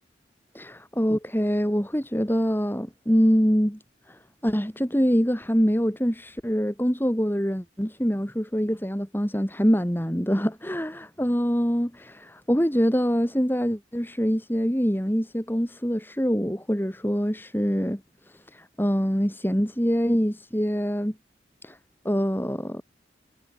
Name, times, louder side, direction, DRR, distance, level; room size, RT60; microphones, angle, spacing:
voice 1, 0.5-3.8 4.1-18.0 18.5-21.1 21.6-21.8 22.0-22.8, equal, 10° left, 4.1 m, -24 dB
head